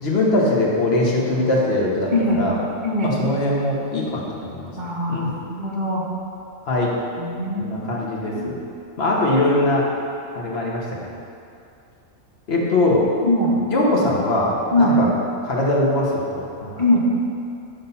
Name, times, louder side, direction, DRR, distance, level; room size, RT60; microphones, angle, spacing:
voice 1, 0.0-2.6 3.0-4.7 5.1-5.3 6.7-6.9 7.6-8.6 9.0-9.9 10.3-10.8 12.5-13.0 13.7-15.1 15.4-16.7, left 2 dB, 50° left, -3 dB, 1.2 m, -21 dB
voice 2, 2.1-2.4 2.8-3.2 4.8-6.1 7.2-7.9 8.3-8.5 13.2-13.6 14.7-15.0 16.8-17.1, left 1 dB, 35° right, -4 dB, 1.1 m, -21 dB
6.0 x 4.2 x 5.5 m, 2.5 s
omnidirectional pair, 1.5 m